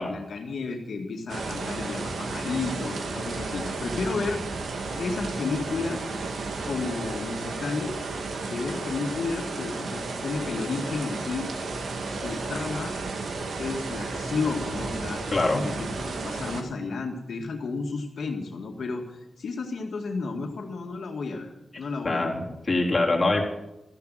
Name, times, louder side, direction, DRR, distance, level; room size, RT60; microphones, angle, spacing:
voice 1, 0.0-4.4 5.0-6.1 6.6-8.0 8.5-11.5 12.1-13.0 13.6-15.2 15.5-22.4, left 4 dB, 75° left, 1 dB, 2.1 m, -32 dB
sound 1, 1.3-16.6, right 3 dB, 85° right, 2.3 m, -33 dB
voice 2, 15.3-15.6 22.0-23.4, left 2 dB, 30° left, -2 dB, 3.8 m, -24 dB
14.5 x 10.5 x 9.1 m, 0.94 s
wide cardioid pair, 110°, 0 cm